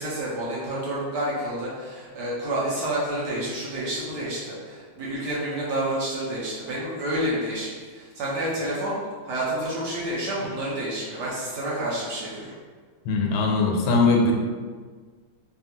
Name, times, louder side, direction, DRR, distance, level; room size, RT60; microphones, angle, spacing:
voice 1, 0.0-9.0 9.2-12.5, right 1 dB, 65° right, -7 dB, 1.2 m, -29 dB
voice 2, 13.1-14.3, left 3 dB, 90° left, 1 dB, 1.4 m, -20 dB
3.4 x 2.4 x 2.8 m, 1.5 s
omnidirectional pair, 2.1 m